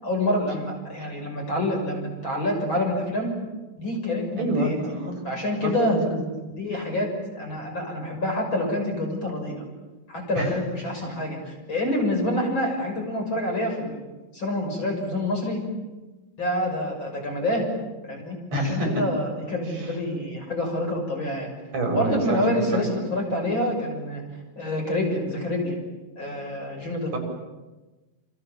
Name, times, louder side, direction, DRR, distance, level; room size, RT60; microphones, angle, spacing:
voice 1, 0.0-3.3 3.8-4.8 5.2-6.0 6.5-9.6 10.1-14.0 14.3-15.6 16.4-17.7 18.1-21.5 21.9-24.2 24.6-25.7 26.2-27.1, left 1 dB, 30° left, 1 dB, 6.8 m, -27 dB
voice 2, 4.4-5.1 5.6-6.2 10.4-10.6 18.5-19.0 19.7-19.9 21.7-22.4 22.7-22.9 27.1-27.2, right 1 dB, 45° right, 2 dB, 8.2 m, -26 dB
30.0 x 28.0 x 7.2 m, 1.2 s
omnidirectional pair, 4.3 m